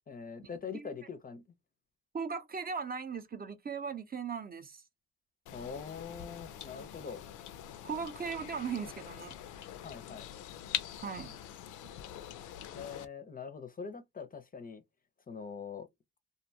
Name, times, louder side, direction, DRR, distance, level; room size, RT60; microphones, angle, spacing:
voice 1, 0.1-1.4 5.5-7.2 9.8-10.3 12.7-14.8 15.3-15.9, left 6 dB, 30° left, 0.5 m, -43 dB
voice 2, 2.1-4.8 7.8-9.4 11.0-11.4, right 6 dB, 30° right, 0.5 m, -38 dB
sound 1, 5.5-13.1, left 11 dB, 80° left, 0.5 m, -44 dB
2.6 x 2.2 x 2.6 m
cardioid pair, 90°, 30 cm